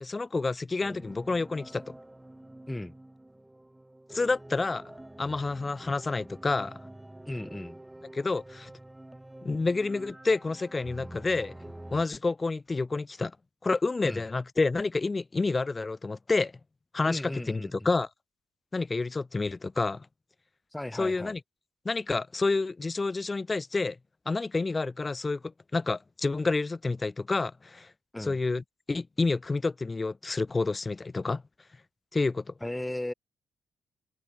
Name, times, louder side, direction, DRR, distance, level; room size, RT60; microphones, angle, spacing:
voice 1, 0.0-1.9 4.1-4.8 5.2-6.8 8.1-8.7 9.4-11.6 11.9-13.3 13.6-16.5 16.9-17.2 17.5-18.1 18.7-20.1 20.9-21.4 21.8-24.0 24.3-27.9 28.2-28.6 28.9-31.4 32.1-32.5, left 3 dB, 25° left, 0.7 m, -29 dB
sound 1, 0.8-12.0, right 1 dB, 10° right, 1.4 m, -47 dB
voice 2, 7.3-7.8 14.0-14.2 17.0-17.9 20.7-21.4 28.1-28.4 32.6-33.1, left 1 dB, 10° left, 1.4 m, -36 dB
open air
cardioid pair, 90°, 0 cm